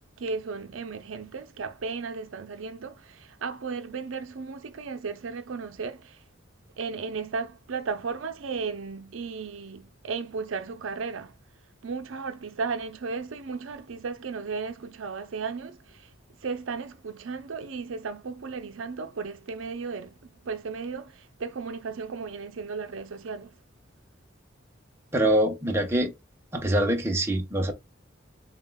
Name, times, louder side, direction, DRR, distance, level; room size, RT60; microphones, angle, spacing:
voice 1, 0.2-6.2 6.8-11.4 11.8-16.1 16.4-23.5, right 4 dB, 85° right, 0.5 m, -35 dB
voice 2, 25.1-26.1 26.5-27.7, right 1 dB, 15° right, 0.8 m, -24 dB
7.0 x 2.4 x 2.2 m
head